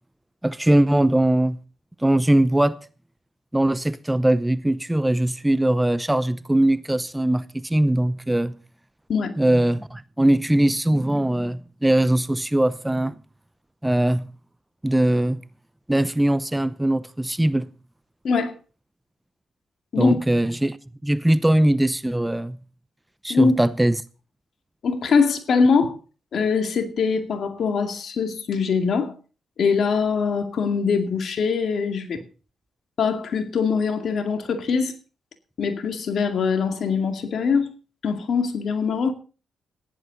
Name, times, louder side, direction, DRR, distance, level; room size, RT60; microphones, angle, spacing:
voice 1, 0.4-1.6 2.0-2.7 3.5-8.6 9.4-13.1 13.8-14.3 14.8-15.4 15.9-17.7 20.0-20.8 21.0-22.6 23.2-24.0, right 1 dB, 10° right, 0.7 m, -21 dB
voice 2, 24.8-25.9 26.3-29.1 29.6-32.2 33.0-34.9 35.6-37.7 38.0-39.1, left 5 dB, 60° left, 2.2 m, -22 dB
15.0 x 10.5 x 4.0 m
supercardioid pair, 55°, 0 cm